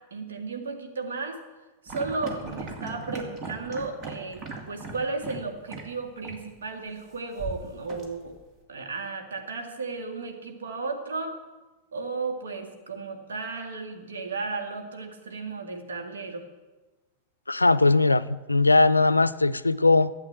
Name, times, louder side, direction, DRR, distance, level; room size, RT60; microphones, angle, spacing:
voice 1, 0.1-1.4 1.8-4.4 4.7-8.3 8.7-11.4 11.9-16.5, right 3 dB, 65° right, 3 dB, 2.0 m, -34 dB
sound 1, 1.9-5.4 5.7-5.8 6.2-6.4 7.4-8.5, right 3 dB, 30° right, 2.0 m, -38 dB
voice 2, 17.5-20.2, left 3 dB, 80° left, 18 dB, 0.4 m, -20 dB
12.5 x 8.2 x 7.8 m, 1.2 s
figure-of-eight pair, 90°, 0 cm